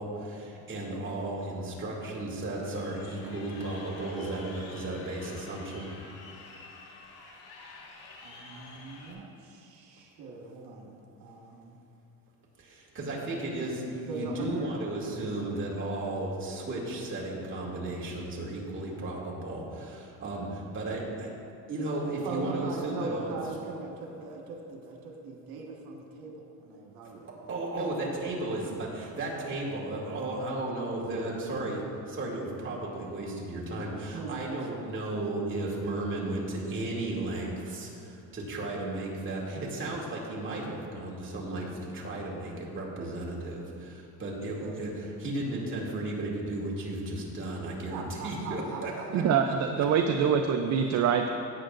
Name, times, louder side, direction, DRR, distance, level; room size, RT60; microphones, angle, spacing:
voice 1, 0.0-5.9 12.6-21.3 21.7-23.4 27.5-49.8, right 2 dB, 35° right, -4 dB, 2.4 m, -34 dB
Crowd, 2.6-9.1, left 3 dB, 80° left, 1.7 m, -49 dB
voice 2, 8.2-11.8 14.1-14.8 22.2-27.3 34.1-34.8 44.6-44.8 47.9-49.1, right 3 dB, 85° right, -1 dB, 1.7 m, -40 dB
voice 3, 49.1-51.3, right 7 dB, 50° right, 5 dB, 0.6 m, -25 dB
16.5 x 8.8 x 2.6 m, 2.6 s
cardioid pair, 125°, 36 cm